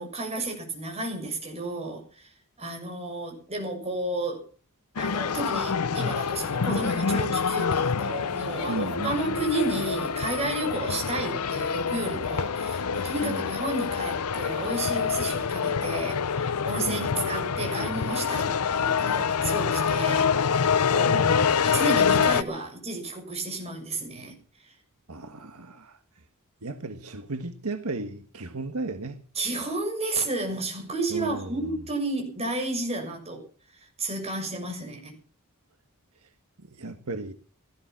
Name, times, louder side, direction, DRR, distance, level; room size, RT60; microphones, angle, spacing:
voice 1, 0.0-2.3 2.6-4.5 5.0-20.3 20.9-21.3 21.6-24.3 24.6-24.7 29.3-33.4 33.7-35.1, right 2 dB, 30° right, 6.6 m, -32 dB
sound 1, 5.0-22.4, left 6 dB, 85° left, 0.7 m, -26 dB
voice 2, 8.7-9.4 13.2-13.4 16.9-17.3 21.0-21.6 25.1-26.0 26.6-29.2 31.1-31.6 36.6-37.3, right 2 dB, 75° right, 1.5 m, -35 dB
18.0 x 13.0 x 6.0 m
head